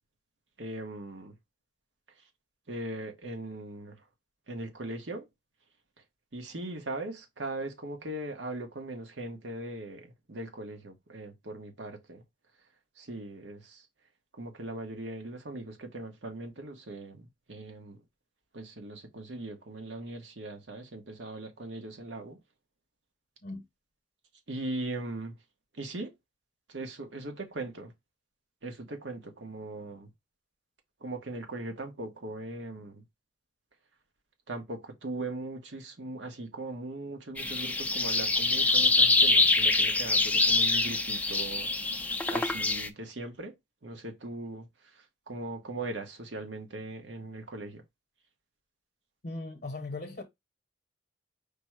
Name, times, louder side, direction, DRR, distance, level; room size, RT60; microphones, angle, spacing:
voice 1, 0.6-1.3 2.7-4.0 4.5-5.2 6.3-12.2 13.0-13.8 14.4-18.0 18.5-22.4 24.5-25.3 25.8-26.1 26.7-27.9 28.6-30.1 31.0-33.0 34.5-41.7 42.3-43.5 43.8-44.6 45.3-47.8, right 2 dB, 70° right, 1.1 m, -39 dB
sound 1, 37.4-42.9, left 3 dB, 10° left, 0.3 m, -25 dB
voice 2, 49.2-50.2, left 2 dB, 50° left, 0.8 m, -38 dB
5.1 x 2.1 x 4.6 m
head